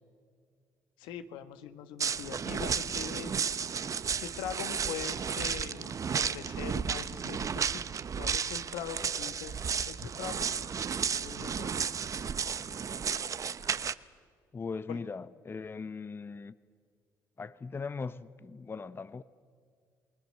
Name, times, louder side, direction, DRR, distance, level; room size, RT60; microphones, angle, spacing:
voice 1, 1.0-3.3 4.2-7.8 8.2-10.5 11.1-11.8 14.9-15.0, left 9 dB, 85° left, 1.4 m, -42 dB
sound 1, 2.0-13.9, right 7 dB, 45° right, 0.8 m, -33 dB
voice 2, 14.5-16.5 17.4-19.2, left 4 dB, 30° left, 0.7 m, -39 dB
28.5 x 20.0 x 6.6 m
supercardioid pair, 65°, 8 cm